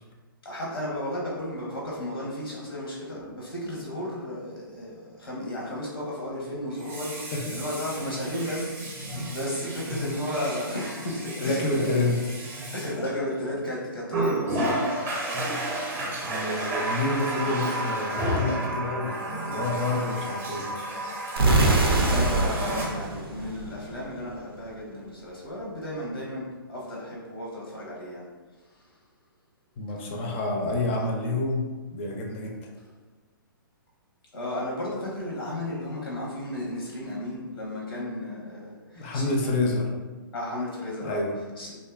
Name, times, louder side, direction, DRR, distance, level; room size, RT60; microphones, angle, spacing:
voice 1, 0.4-7.3 7.5-12.0 12.7-14.8 22.0-28.2 34.3-39.5 40.3-41.2 41.6-41.7, left 1 dB, 90° left, -4 dB, 0.7 m, -34 dB
Water tap faucet, 3.1-3.3 6.7-13.5 14.1-22.8, right 1 dB, 20° right, 0.6 m, -32 dB
voice 2, 7.3-7.6 8.4-8.6 11.4-12.3 16.0-19.2 19.5-20.9 29.8-32.7 38.9-39.9 41.0-41.4, left 2 dB, 30° left, 0 dB, 0.4 m, -28 dB
sound 1, 21.4-24.2, right 2 dB, 90° right, 0.5 m, -23 dB
2.5 x 2.3 x 2.3 m, 1.3 s
hypercardioid pair, 130°, 12 cm